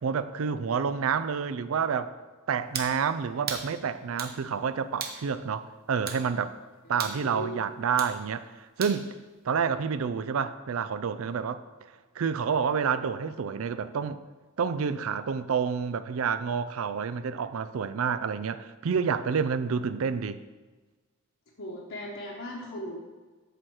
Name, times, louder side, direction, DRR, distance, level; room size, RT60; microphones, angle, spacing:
voice 1, 0.0-2.1 2.5-6.6 6.9-8.5 8.8-9.1 9.4-11.6 12.2-14.2 14.6-20.4, right 6 dB, 70° right, 13 dB, 0.4 m, -29 dB
sound 1, 2.7-2.9 3.5-3.7 4.2-4.4 5.0-5.2 6.1-6.2 7.0-7.2 8.0-8.2 8.8-9.0, right 6 dB, 45° right, 0.8 m, -35 dB
voice 2, 7.1-7.7 21.6-23.0, equal, 60° left, -5 dB, 1.1 m, -38 dB
7.9 x 4.4 x 6.2 m, 1.3 s
head